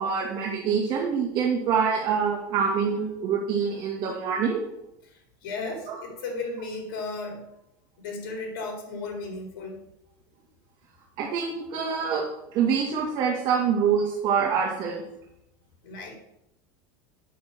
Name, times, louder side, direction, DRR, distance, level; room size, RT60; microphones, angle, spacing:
voice 1, 0.0-4.6 5.9-6.0 11.2-12.3 12.5-15.0, right 6 dB, 45° right, -1 dB, 2.0 m, -25 dB
voice 2, 5.1-7.5 8.0-9.8 15.8-16.2, left 3 dB, 75° left, 1 dB, 3.9 m, -35 dB
8.5 x 6.8 x 6.7 m, 0.83 s
supercardioid pair, 145°, 11 cm